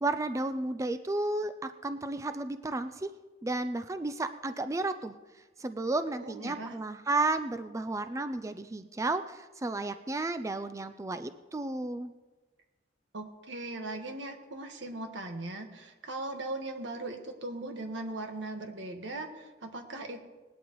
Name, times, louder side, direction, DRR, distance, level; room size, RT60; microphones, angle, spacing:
voice 1, 0.0-3.1 3.4-5.1 5.6-12.1, right 2 dB, 15° right, 10 dB, 0.4 m, -32 dB
voice 2, 6.2-6.8 13.1-20.2, right 2 dB, 75° right, 4 dB, 1.5 m, -39 dB
19.5 x 12.0 x 3.1 m, 1.2 s
head